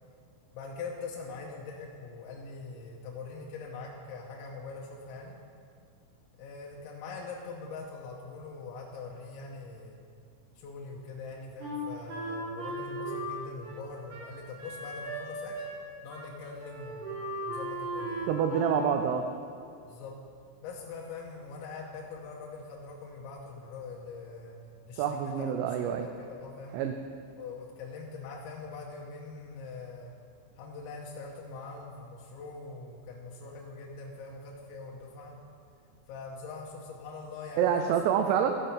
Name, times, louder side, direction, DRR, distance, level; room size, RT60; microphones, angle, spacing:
voice 1, 0.5-5.4 6.4-10.0 10.6-15.6 16.0-18.3 19.9-20.2 20.6-24.6 24.8-26.8 27.4-30.1 30.6-35.4 36.1-37.9 38.3-38.4, left 4 dB, 80° left, -3 dB, 2.9 m, -43 dB
Wind instrument woodwind instrument, 11.6-15.8 16.1-16.3 16.6-18.9, right 1 dB, 65° right, 4.7 m, -37 dB
voice 2, 18.3-19.3 24.9-26.1 26.7-27.0 37.6-38.6, right 8 dB, 85° right, 5 dB, 3.0 m, -27 dB
15.5 x 5.6 x 5.5 m, 2.3 s
omnidirectional pair, 5.9 m